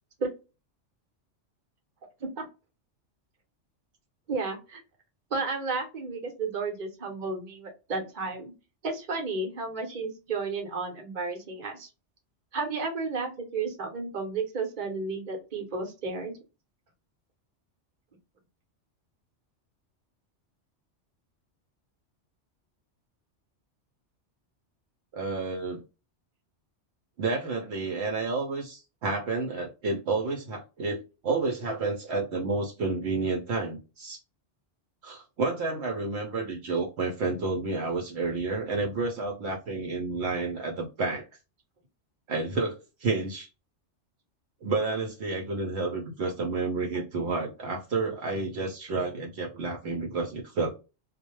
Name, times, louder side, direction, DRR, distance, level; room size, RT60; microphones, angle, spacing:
voice 1, 4.3-4.8 5.3-8.5 8.8-11.9 12.5-16.3, right 4 dB, 45° right, 3 dB, 0.9 m, -32 dB
voice 2, 25.1-25.8 27.2-34.2 35.0-41.3 42.3-43.5 44.6-50.8, right 3 dB, 70° right, 1 dB, 0.8 m, -30 dB
2.3 x 2.1 x 2.9 m, 0.29 s
omnidirectional pair, 1.2 m